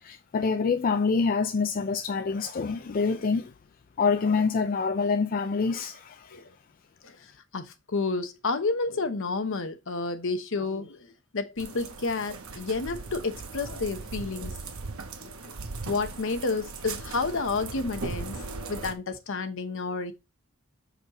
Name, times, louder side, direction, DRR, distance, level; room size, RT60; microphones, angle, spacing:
voice 1, 0.0-3.5 4.0-6.4, left 4 dB, 40° left, 0.4 m, -26 dB
voice 2, 2.8-3.2 6.3-6.5 7.0-11.1 11.3-14.6 15.2-15.5 15.8-18.4 18.7-20.1, left 3 dB, 60° left, 0.9 m, -31 dB
sound 1, 11.6-18.9, right 3 dB, 70° right, 0.9 m, -38 dB
6.4 x 5.0 x 2.9 m
head